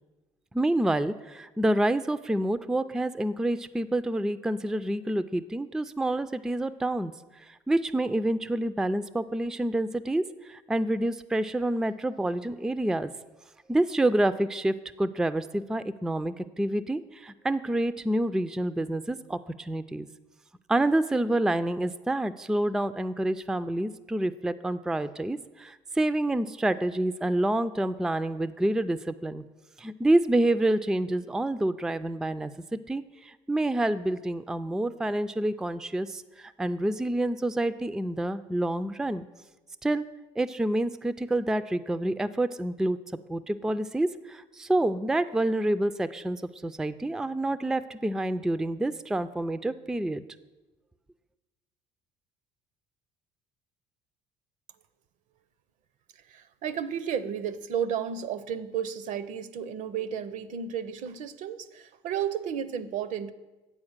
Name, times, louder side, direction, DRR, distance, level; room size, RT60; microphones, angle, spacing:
voice 1, 0.5-7.1 7.5-13.1 13.7-20.1 20.7-29.4 29.8-39.3 39.8-40.0 40.4-43.0 43.3-50.2, right 1 dB, 5° right, 13 dB, 0.3 m, -28 dB
voice 2, 56.2-63.3, right 8 dB, 65° right, 14 dB, 0.5 m, -33 dB
8.7 x 4.3 x 7.2 m, 1.1 s
supercardioid pair, 80°, 14 cm